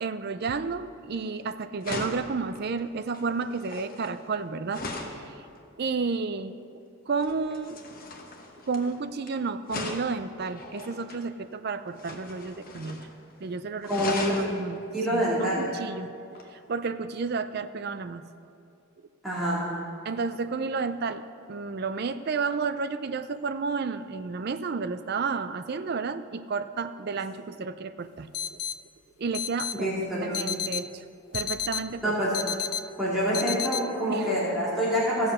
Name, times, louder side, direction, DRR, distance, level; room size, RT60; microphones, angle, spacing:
voice 1, 0.0-4.8 5.3-5.4 5.8-6.5 7.1-7.8 8.7-13.1 13.4-14.1 14.4-14.8 15.1-16.1 16.5-18.2 20.0-21.2 21.5-28.6 29.2-29.9 30.2-31.0 31.3-32.1 32.5-32.6 34.1-34.3, right 4 dB, 45° right, 11 dB, 0.4 m, -31 dB
sound 1, 1.2-1.4 1.8-5.2 7.2-9.3 9.7-11.2 11.9-13.1 13.4-13.5 13.8-14.5 16.4-16.5, left 3 dB, 40° left, 1.1 m, -38 dB
voice 2, 13.9-14.3 14.9-15.7 19.2-19.7 29.8-30.3 32.0-32.3 33.0-35.3, equal, ahead, -10 dB, 2.5 m, -26 dB
sound 2, 28.3-28.7 29.3-29.7 30.3-30.8 31.3-31.8 32.3-32.8 33.3-33.8, left 9 dB, 85° left, 0.4 m, -30 dB
16.0 x 7.0 x 5.5 m, 2.4 s
head